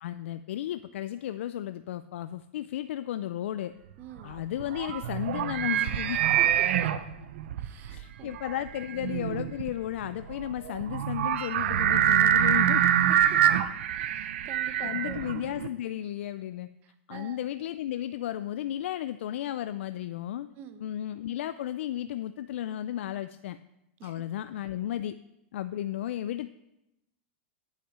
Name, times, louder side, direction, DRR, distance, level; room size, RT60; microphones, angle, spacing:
voice 1, 0.0-3.7 4.2-6.3 7.9-12.9 14.8-16.7 17.1-20.5 20.8-23.6 24.0-25.2 25.5-26.5, left 12 dB, 75° left, 12 dB, 0.3 m, -34 dB
voice 2, 4.0-4.4 6.4-6.9 7.6-8.3 13.1-13.6 13.9-15.2 16.8-17.4 20.6-20.8 24.0-24.2, right 9 dB, 30° right, 9 dB, 0.8 m, -46 dB
sound 1, 4.2-15.7, right 10 dB, 70° right, 0.6 m, -26 dB
8.9 x 5.8 x 7.2 m, 0.88 s
supercardioid pair, 155°, 7 cm